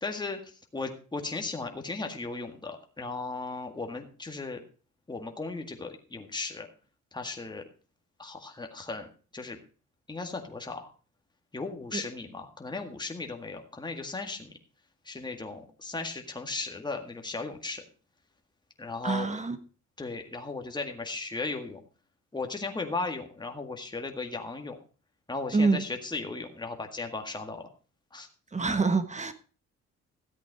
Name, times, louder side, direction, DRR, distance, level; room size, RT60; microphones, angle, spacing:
voice 1, 0.0-4.6 5.1-6.7 7.1-7.6 8.2-9.1 9.3-9.6 10.1-10.9 11.5-14.5 15.1-17.8 18.8-19.4 20.0-21.8 22.3-24.8 25.3-27.7 28.1-28.3, left 3 dB, 15° left, 1.9 m, -36 dB
voice 2, 19.0-19.6 25.5-25.8 28.5-29.3, right 4 dB, 25° right, 1.4 m, -26 dB
13.5 x 8.3 x 4.7 m
cardioid pair, 90°, 30 cm